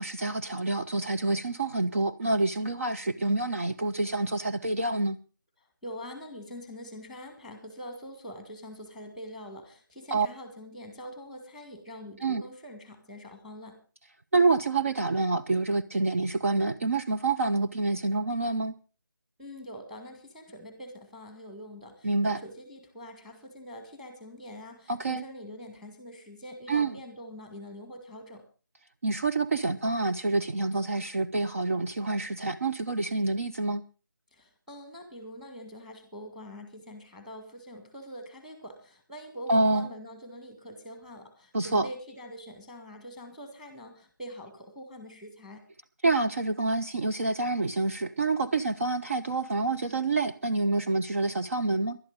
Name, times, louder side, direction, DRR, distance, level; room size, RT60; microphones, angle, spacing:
voice 1, 0.0-5.2 10.1-10.3 12.2-12.4 14.3-18.7 22.0-22.4 24.9-25.2 26.7-27.0 29.0-33.8 39.5-39.9 41.5-41.9 46.0-52.0, right 3 dB, 40° right, 0.7 m, -27 dB
voice 2, 5.8-13.8 19.4-28.5 34.3-45.7, equal, ahead, 1.8 m, -44 dB
19.5 x 12.0 x 3.9 m
figure-of-eight pair, 160°, 11 cm